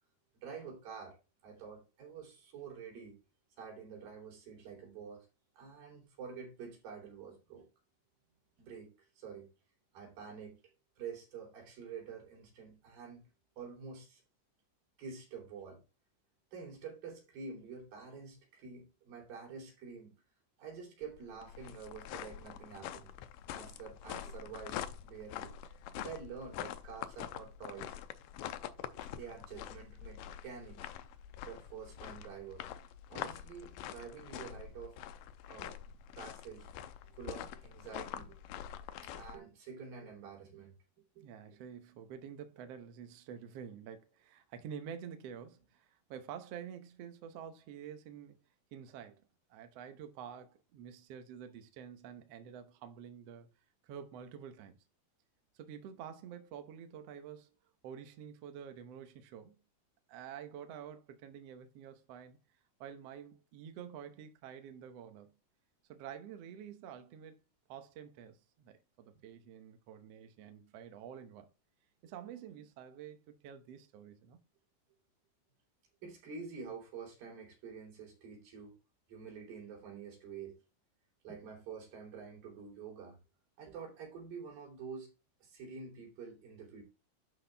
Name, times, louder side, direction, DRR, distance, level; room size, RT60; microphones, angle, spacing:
voice 1, 0.3-1.2 1.4-3.2 3.6-5.3 5.5-7.7 8.6-9.5 9.9-10.6 11.0-13.2 13.6-14.2 15.0-15.8 16.5-20.1 20.6-23.1 23.5-25.6 26.0-28.0 29.0-30.9 31.5-32.7 33.1-35.0 35.5-35.8 36.2-36.7 37.0-38.4 39.0-40.8 41.1-41.3 72.1-72.2 76.0-78.8 79.1-80.6 81.2-83.2 83.6-85.1 85.4-86.8, right 6 dB, 90° right, 4.8 m, -48 dB
sound 1, 21.0-39.4, left 10 dB, 85° left, 2.3 m, -45 dB
voice 2, 41.2-48.4 48.7-49.2 49.5-53.5 53.8-54.8 55.5-57.5 57.8-59.6 60.1-62.4 62.8-65.4 65.9-67.4 67.7-71.5 72.0-74.4, right 8 dB, 70° right, 1.6 m, -48 dB
11.5 x 4.2 x 3.4 m
omnidirectional pair, 4.0 m